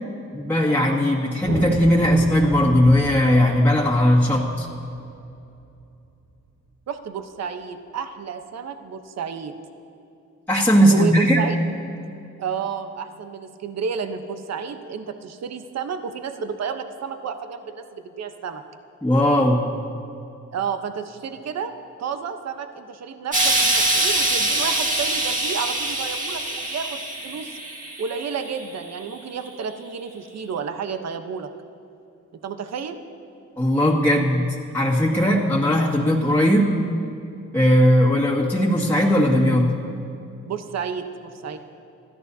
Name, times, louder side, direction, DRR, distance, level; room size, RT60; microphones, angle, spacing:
voice 1, 0.3-4.7 10.5-11.4 19.0-19.6 33.6-34.5 34.7-36.7 37.5-39.7, equal, 5° left, -5 dB, 2.0 m, -18 dB
sound 1, 1.4-5.8, right 3 dB, 45° right, 1.5 m, -33 dB
voice 2, 6.9-9.5 10.9-11.6 12.4-18.6 20.5-21.7 22.0-27.6 28.0-31.5 32.4-33.0 40.4-41.6, right 6 dB, 60° right, 7 dB, 1.0 m, -31 dB
Explosion, 23.3-28.6 29.5-29.6, right 1 dB, 25° right, 1.9 m, -24 dB
27.5 x 13.5 x 2.8 m, 2.7 s
cardioid pair, 80°, 29 cm